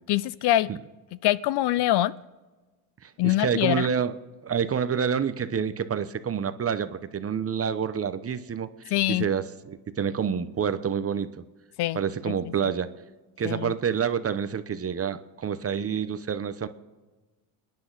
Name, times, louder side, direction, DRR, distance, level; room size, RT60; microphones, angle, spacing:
voice 1, 0.1-0.7 1.2-2.1 3.2-3.9 8.9-9.3 11.8-12.0 12.3-12.4 13.4-13.7, left 15 dB, 55° left, 19 dB, 0.6 m, -24 dB
voice 2, 3.0-4.1 4.4-11.4 11.9-12.9 13.4-16.7, right 7 dB, 30° right, 12 dB, 0.9 m, -28 dB
29.5 x 10.5 x 4.1 m, 1.3 s
supercardioid pair, 95°, 49 cm